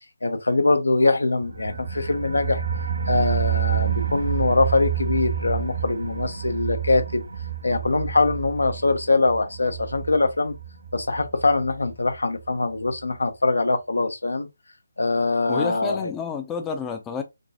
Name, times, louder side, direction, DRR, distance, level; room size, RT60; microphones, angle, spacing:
voice 1, 0.2-2.6 3.1-7.2 7.6-10.5 10.9-14.5 15.0-16.1, left 3 dB, 85° left, 0.8 m, -23 dB
sound 1, 1.4-12.1 12.4-12.5 12.9-13.0, right 8 dB, 75° right, 1.5 m, -29 dB
voice 2, 15.5-17.2, left 6 dB, 10° left, 0.5 m, -30 dB
5.1 x 2.5 x 2.8 m
figure-of-eight pair, 155°, 0 cm